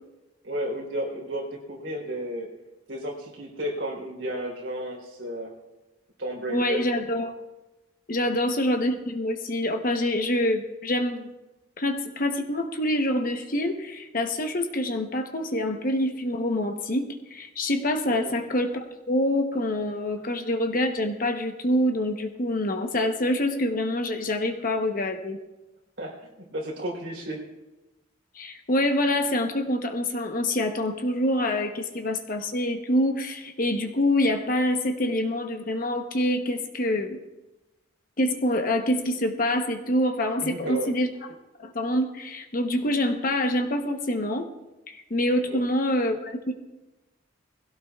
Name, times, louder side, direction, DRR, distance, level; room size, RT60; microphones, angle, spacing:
voice 1, 0.4-2.5 2.9-5.5 6.2-6.8 8.2-8.4 18.2-18.3 26.0-27.4 40.4-40.9 45.5-45.7, right 1 dB, 60° right, -2 dB, 3.6 m, -33 dB
voice 2, 6.5-7.3 8.1-11.3 11.8-25.4 28.3-37.2 38.2-41.1 41.6-44.5 44.9-46.5, left 1 dB, 45° left, 5 dB, 0.9 m, -26 dB
21.0 x 16.5 x 2.4 m, 1.1 s
head